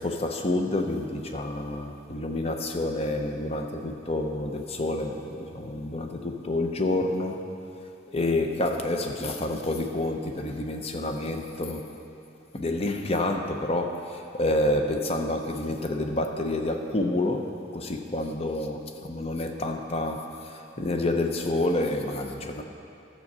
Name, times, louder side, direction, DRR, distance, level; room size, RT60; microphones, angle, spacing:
voice 1, 0.0-7.4 8.1-11.9 12.5-22.6, left 2 dB, 35° left, 4 dB, 0.7 m, -28 dB
12.5 x 7.4 x 5.4 m, 2.7 s
head